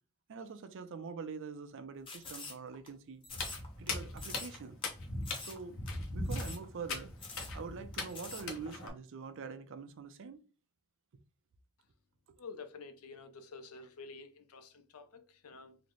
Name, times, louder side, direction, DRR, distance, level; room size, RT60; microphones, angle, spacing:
voice 1, 0.3-3.2 3.8-4.8 5.4-5.8 6.1-7.1 7.5-10.4 12.3-12.4, right 5 dB, 60° right, 0.4 m, -45 dB
sound 1, 2.1-2.9 3.2-3.9 4.2-4.6 4.8-4.9 5.2-5.6 5.9-6.0 6.3-6.6 6.9-7.0 7.2-7.5 7.9-8.4, left 3 dB, 25° left, 0.8 m, -46 dB
Walk footsteps, 3.3-8.9, left 2 dB, 65° left, 1.0 m, -40 dB
voice 2, 12.4-15.8, left 4 dB, 85° left, 0.6 m, -49 dB
3.8 x 2.1 x 3.0 m
head